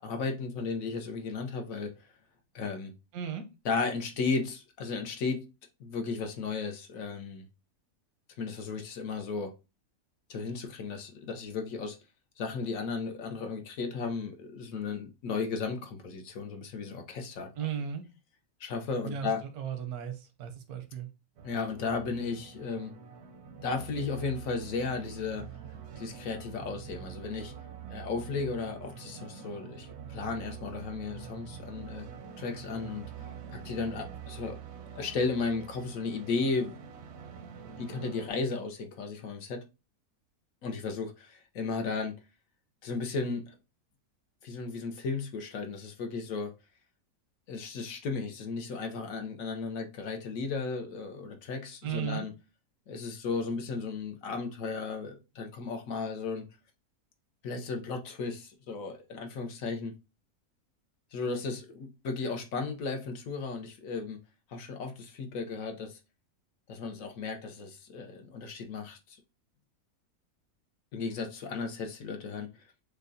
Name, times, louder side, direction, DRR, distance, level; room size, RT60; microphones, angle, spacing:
voice 1, 0.0-1.9 2.5-2.9 3.6-5.4 5.8-7.5 8.4-9.5 10.3-12.0 12.4-17.5 18.6-19.4 21.4-22.9 23.6-25.5 26.0-27.5 27.9-32.1 32.4-33.0 33.5-34.6 34.9-36.8 37.8-39.6 40.6-42.1 42.8-43.5 44.4-46.5 47.5-52.3 52.9-56.5 57.4-59.9 61.1-64.2 64.5-66.0 66.7-69.2 70.9-72.5, left 4 dB, 70° left, 1.1 m, -35 dB
voice 2, 3.1-3.5 17.6-18.0 19.0-21.1 51.8-52.3, right 8 dB, 90° right, 1.2 m, -36 dB
sound 1, 21.4-38.3, right 7 dB, 65° right, 0.7 m, -45 dB
6.4 x 2.3 x 2.6 m
omnidirectional pair, 1.5 m